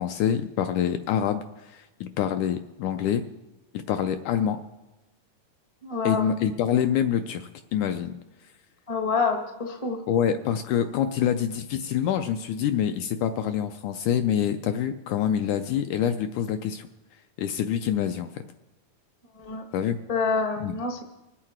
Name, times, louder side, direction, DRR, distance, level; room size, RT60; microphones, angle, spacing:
voice 1, 0.0-3.2 3.7-4.6 6.0-8.1 10.1-16.9 17.4-18.3 19.7-20.0 20.6-20.7, left 9 dB, 80° left, 8 dB, 1.8 m, -26 dB
voice 2, 5.8-6.3 8.9-10.0 19.4-19.6 20.1-21.0, left 4 dB, 50° left, 3 dB, 0.3 m, -27 dB
25.0 x 8.6 x 4.5 m, 1.0 s
omnidirectional pair, 4.0 m